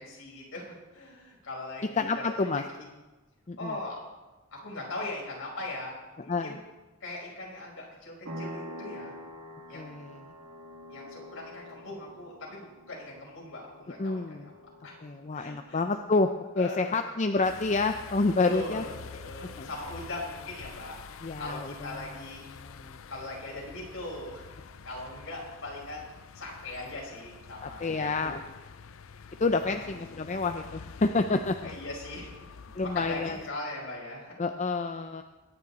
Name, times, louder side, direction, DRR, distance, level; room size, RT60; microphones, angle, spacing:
voice 1, 0.0-2.1 2.4-2.5 2.8-2.9 3.6-4.0 4.5-6.0 6.2-6.6 7.0-9.2 9.7-9.9 10.9-14.5 14.8-15.0 15.3-15.8 16.6-17.0 18.4-21.0 21.4-22.4 23.1-24.5 24.8-28.4 29.6-29.9 31.6-34.4, left 2 dB, 65° left, -3 dB, 5.0 m, -40 dB
voice 2, 1.9-2.6 3.5-3.7 6.3-6.6 9.7-10.3 14.0-14.5 15.0-16.3 16.6-18.8 19.6-19.7 21.2-22.2 22.6-23.0 27.6-28.4 29.4-31.7 32.8-33.4 34.4-35.2, left 3 dB, 35° left, 6 dB, 0.5 m, -29 dB
sound 1, 8.2-16.6, equal, 85° right, 2.4 m, -46 dB
sound 2, 17.4-33.5, left 5 dB, 80° left, 0.6 m, -47 dB
22.5 x 9.2 x 4.2 m, 1.1 s
head